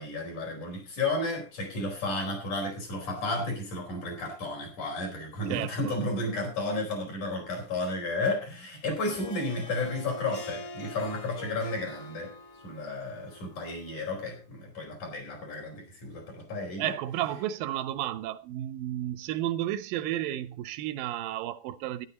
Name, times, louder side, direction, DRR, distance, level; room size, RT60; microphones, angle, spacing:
voice 1, 0.0-12.3 12.6-17.0, left 2 dB, 60° left, 6.0 m, -32 dB
voice 2, 5.5-5.9 16.8-22.1, right 13 dB, 90° right, 2.5 m, -32 dB
Harp, 8.9-14.4, left 2 dB, 35° left, 1.9 m, -45 dB
12.5 x 11.0 x 4.1 m
omnidirectional pair, 3.9 m